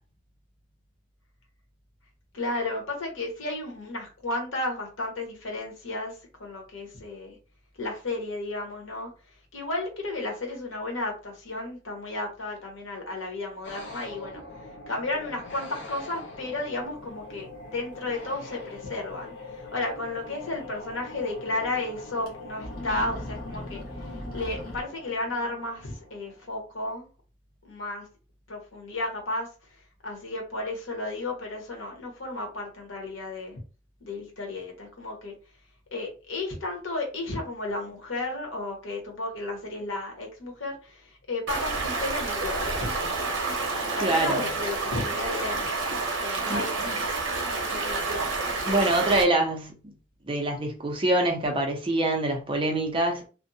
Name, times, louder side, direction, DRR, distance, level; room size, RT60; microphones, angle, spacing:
voice 1, 2.3-6.1 6.4-7.4 7.8-9.1 9.5-14.4 14.9-23.8 24.3-27.1 27.6-28.1 28.5-29.5 30.0-33.6 34.0-35.3 35.9-43.3 44.0-45.7 46.2-47.0 47.4-48.3, left 2 dB, 85° left, 1.0 m, -33 dB
sound 1, 13.6-26.6, left 2 dB, 65° left, 0.5 m, -43 dB
sound 2, 18.7-18.8 19.1-19.2 20.7-20.8 21.1-21.2 22.1-22.3 22.6-24.8, left 1 dB, 45° left, 0.9 m, -38 dB
Stream, 41.5-49.2, right 3 dB, 80° right, 0.7 m, -29 dB
voice 2, 44.0-44.5 46.5-46.6 48.7-49.7 50.3-53.3, right 1 dB, 25° right, 0.5 m, -25 dB
2.5 x 2.1 x 2.6 m
head